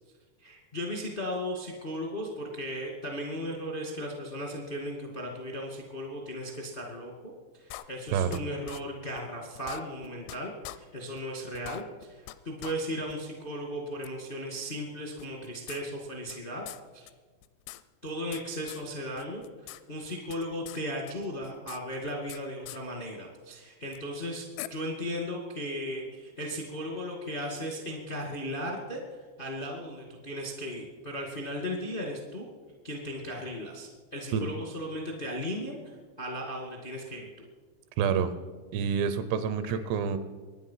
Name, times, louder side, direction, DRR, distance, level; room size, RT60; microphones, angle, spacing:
voice 1, 0.4-7.1 7.5-16.6 16.9-17.1 18.0-29.0 29.4-32.5 32.8-37.5 39.6-39.7, equal, 60° left, 0 dB, 0.5 m, -36 dB
sound 1, 7.7-8.4 8.7-8.8 9.2-9.3 9.6-10.4 10.6-10.8 11.2-11.3 11.5-12.4 12.6-12.7 13.1-13.2 14.0-14.1 15.2-16.4 16.7-16.8 17.1-17.2 17.4-18.4 18.7-18.8 19.2-19.8 20.1-20.8 21.1-22.4 22.7-22.8 23.9-24.0 24.6-24.7, left 16 dB, 85° left, 3.0 m, -43 dB
voice 2, 38.0-38.3 38.7-40.2, right 7 dB, 80° right, 12 dB, 2.8 m, -27 dB
24.0 x 9.8 x 5.7 m, 1.4 s
omnidirectional pair, 5.2 m